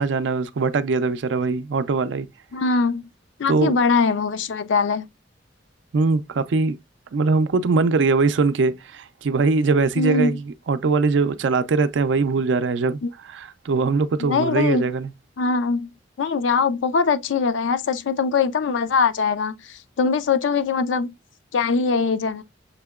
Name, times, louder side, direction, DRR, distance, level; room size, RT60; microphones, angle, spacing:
voice 1, 0.0-2.3 3.5-3.7 5.9-6.8 7.1-13.0 13.3-15.1, right 4 dB, 75° right, 0.4 m, -21 dB
voice 2, 2.5-3.1 3.4-5.1 10.0-10.4 13.0-13.1 14.2-14.9 15.4-15.9 16.2-21.1 21.5-22.4, left 5 dB, 80° left, 0.4 m, -22 dB
6.6 x 2.8 x 2.3 m
head